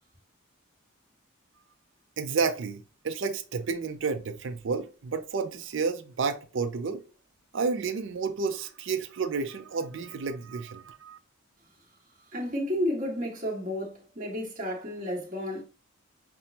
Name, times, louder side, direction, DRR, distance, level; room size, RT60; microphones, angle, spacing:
voice 1, 2.2-7.0 7.5-11.2, right 4 dB, 60° right, 0.5 m, -31 dB
voice 2, 12.3-15.6, left 1 dB, 40° right, 1.4 m, -31 dB
5.9 x 2.0 x 2.7 m
head